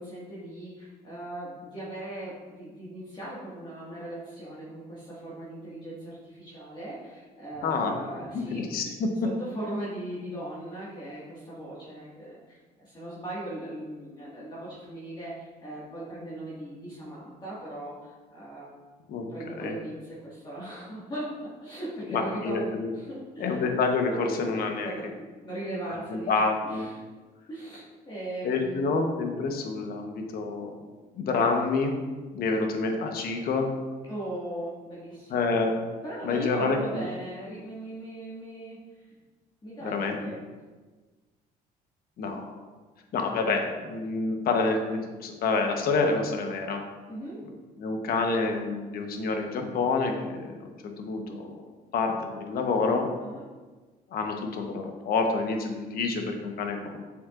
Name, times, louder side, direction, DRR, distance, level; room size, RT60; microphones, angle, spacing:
voice 1, 0.0-8.7 9.2-18.7 19.3-23.6 24.4-25.1 25.4-26.3 26.6-27.0 27.5-28.9 34.1-35.5 36.0-39.0 39.6-40.4 47.1-47.4 53.2-53.5, right 1 dB, 25° left, -8 dB, 1.8 m, -38 dB
voice 2, 7.6-8.0 8.3-9.1 19.1-19.3 19.6-19.7 22.1-22.9 23.4-24.9 26.1-26.9 28.4-30.8 31.1-31.9 32.3-33.7 35.3-35.7 36.2-37.0 39.8-40.2 42.2-42.6 43.1-46.8 47.8-50.5 50.8-51.5 51.9-53.1 54.1-57.0, left 4 dB, 60° left, 3 dB, 1.1 m, -28 dB
7.5 x 6.0 x 2.5 m, 1.3 s
cardioid pair, 110°, 17 cm